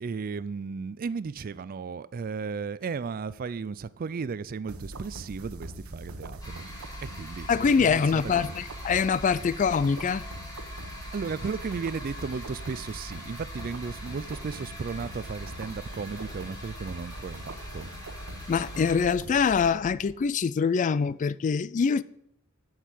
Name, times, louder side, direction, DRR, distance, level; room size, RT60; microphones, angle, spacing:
voice 1, 0.0-6.7 7.1-8.6 11.1-17.9, right 5 dB, 45° right, 0.4 m, -35 dB
sound 1, 4.7-20.1, right 1 dB, 85° right, 1.1 m, -42 dB
sound 2, 6.4-19.0, left 1 dB, 20° left, 3.0 m, -45 dB
voice 2, 7.5-10.2 18.5-22.0, left 6 dB, 35° left, 0.3 m, -24 dB
8.1 x 6.4 x 7.6 m
head